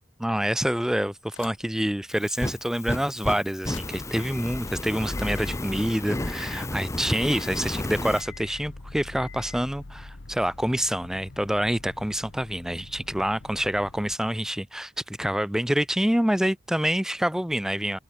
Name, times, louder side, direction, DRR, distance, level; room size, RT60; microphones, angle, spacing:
voice 1, 0.2-18.0, equal, 5° right, 0.4 m, -27 dB
sound 1, 1.3-1.8 2.2-2.3 3.5-14.2, left 3 dB, 65° left, 1.2 m, -43 dB
Fire, 2.1-8.2, left 1 dB, 15° left, 0.8 m, -33 dB
head